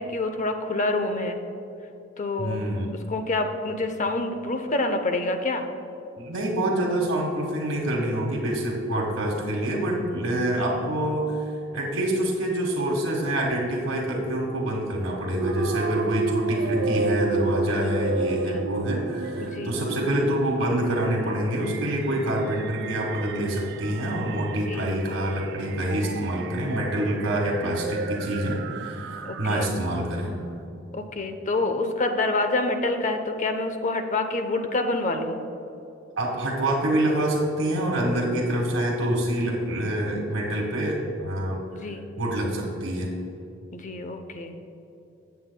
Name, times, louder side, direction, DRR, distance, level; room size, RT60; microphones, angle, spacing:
voice 1, 0.0-1.4 2.2-2.6 3.1-5.6 10.6-10.9 17.8-17.9 18.5-18.7 19.4-19.8 24.7-25.0 29.2-29.7 30.9-35.4 41.7-42.1 43.7-44.5, left 2 dB, 40° left, 7 dB, 0.7 m, -27 dB
voice 2, 2.4-2.9 6.2-30.3 36.2-41.6 42.2-43.1, right 1 dB, 85° right, -5 dB, 1.4 m, -26 dB
sound 1, 15.4-30.0, right 3 dB, 60° right, 0.5 m, -32 dB
16.0 x 7.4 x 2.2 m, 2.9 s
head